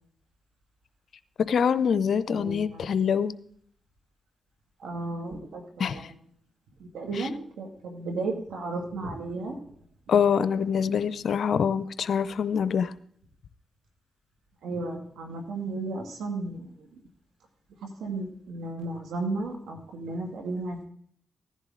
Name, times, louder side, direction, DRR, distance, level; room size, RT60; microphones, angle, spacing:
voice 1, 1.5-3.3 5.8-6.0 10.1-12.9, left 7 dB, 70° left, 15 dB, 0.6 m, -25 dB
voice 2, 2.3-2.9 4.8-6.1 6.8-9.6 14.6-17.0 17.8-20.9, right 2 dB, 85° right, 2 dB, 2.4 m, -34 dB
15.0 x 10.5 x 3.9 m, 0.62 s
cardioid pair, 60°, 0 cm